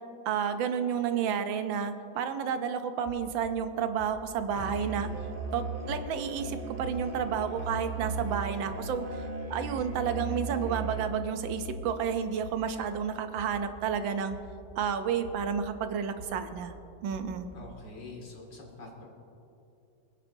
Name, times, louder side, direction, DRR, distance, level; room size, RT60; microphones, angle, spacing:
voice 1, 0.3-5.1 5.5-9.2 9.5-14.4 14.8-16.8 17.0-17.6, right 7 dB, 80° right, 9 dB, 1.4 m, -31 dB
sound 1, 3.0-6.4 6.8-9.3 9.6-13.9 14.3-16.8 17.1-17.8, equal, 25° right, 3.2 m, -48 dB
Musical instrument, 4.6-11.4, right 3 dB, 40° right, 0.8 m, -37 dB
voice 2, 17.5-19.1, left 3 dB, 65° left, 0 dB, 2.6 m, -45 dB
23.5 x 9.8 x 2.7 m, 2.7 s
omnidirectional pair, 2.1 m